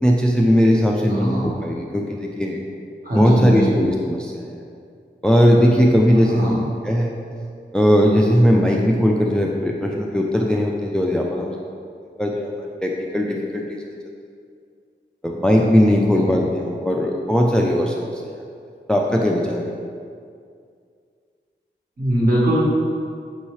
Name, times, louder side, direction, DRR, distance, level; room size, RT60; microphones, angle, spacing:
voice 1, 0.0-2.6 3.2-4.6 5.2-7.2 7.7-11.5 12.2-13.8 15.2-18.4 18.9-19.6, equal, 5° left, 0 dB, 0.3 m, -19 dB
voice 2, 1.1-1.5 3.0-3.7 6.1-6.6 16.0-16.3 22.0-22.6, equal, 50° right, -7 dB, 1.4 m, -21 dB
5.5 x 2.8 x 3.1 m, 2.3 s
wide cardioid pair, 50°, 19 cm